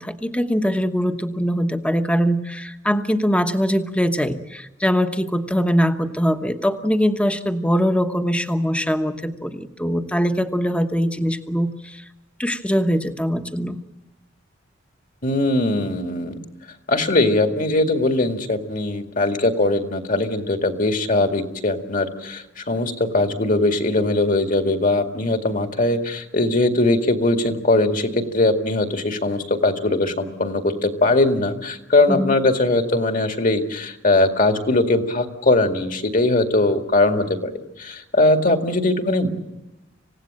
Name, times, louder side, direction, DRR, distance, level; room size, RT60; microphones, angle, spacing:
voice 1, 0.0-12.0 12.4-13.8 32.1-32.3, equal, 5° left, 7 dB, 1.2 m, -22 dB
voice 2, 15.2-16.4 16.9-37.5 37.8-39.4, left 2 dB, 45° left, 6 dB, 2.2 m, -20 dB
27.0 x 17.0 x 8.9 m, 1.0 s
head